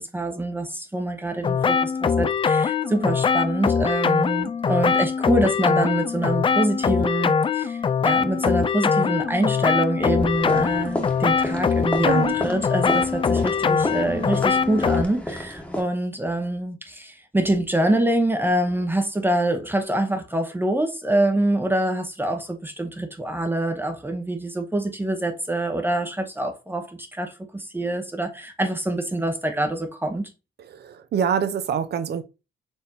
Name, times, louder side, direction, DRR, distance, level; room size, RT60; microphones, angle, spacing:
voice 1, 0.0-30.3, right 1 dB, 10° right, 0.8 m, -25 dB
sound 1, 1.4-15.0, left 6 dB, 25° left, 0.3 m, -22 dB
sound 2, 10.2-15.8, equal, 5° left, 1.2 m, -32 dB
voice 2, 12.0-12.4 30.6-32.2, right 8 dB, 55° right, 0.7 m, -25 dB
4.4 x 3.4 x 2.7 m
cardioid pair, 90°, 20 cm